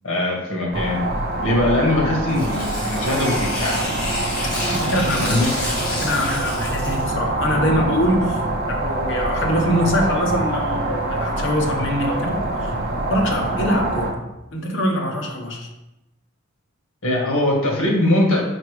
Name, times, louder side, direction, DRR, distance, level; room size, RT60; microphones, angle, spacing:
voice 1, 0.0-1.0 1.4-3.9 5.1-5.5 17.0-18.4, left 1 dB, 80° left, -1 dB, 1.7 m, -21 dB
sound 1, 0.7-14.1, right 1 dB, 45° right, 0.8 m, -25 dB
Tearing, 2.3-7.1, left 1 dB, 40° left, 1.9 m, -29 dB
voice 2, 4.7-5.4 5.9-8.4 8.7-12.7 13.1-14.2 14.5-15.7, equal, 60° left, 2 dB, 1.1 m, -23 dB
4.7 x 4.4 x 4.9 m, 0.93 s
head